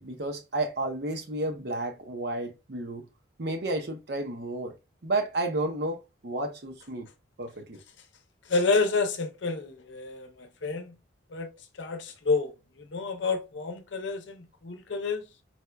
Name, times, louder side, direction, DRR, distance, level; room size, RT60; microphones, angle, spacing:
voice 1, 0.0-3.1 3.4-4.7 5.0-7.1 7.4-7.8, right 2 dB, 60° right, 0.7 m, -32 dB
voice 2, 8.5-11.0 11.3-11.5 11.8-12.5 12.8-15.2, left 4 dB, 75° left, 0.6 m, -29 dB
4.2 x 2.2 x 2.3 m
head